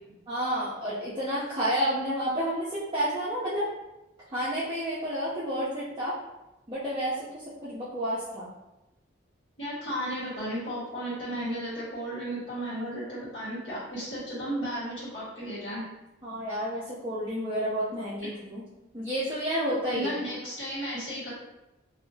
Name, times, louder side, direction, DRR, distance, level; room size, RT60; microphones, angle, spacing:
voice 1, 0.3-3.7 4.3-6.1 6.7-8.5 16.2-18.6 18.9-20.1, equal, 25° right, -11 dB, 0.5 m, -30 dB
voice 2, 9.6-15.8 18.2-18.3 19.9-21.3, equal, 70° left, -10 dB, 1.5 m, -34 dB
2.7 x 2.7 x 2.7 m, 0.95 s
head